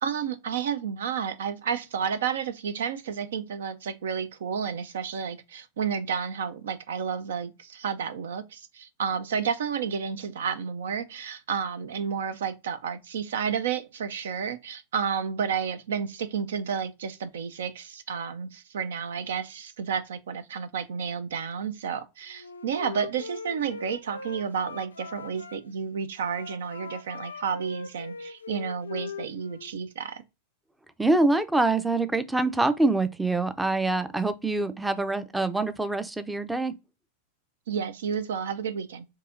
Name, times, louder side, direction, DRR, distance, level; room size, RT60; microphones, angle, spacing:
voice 1, 0.0-30.2 37.7-39.1, right 7 dB, 75° right, 0.4 m, -31 dB
Wind instrument woodwind instrument, 22.3-25.6 26.1-29.7, left 4 dB, 90° left, 0.4 m, -40 dB
voice 2, 31.0-36.7, right 2 dB, 5° right, 0.4 m, -25 dB
4.6 x 2.8 x 2.5 m
hypercardioid pair, 95°, 0 cm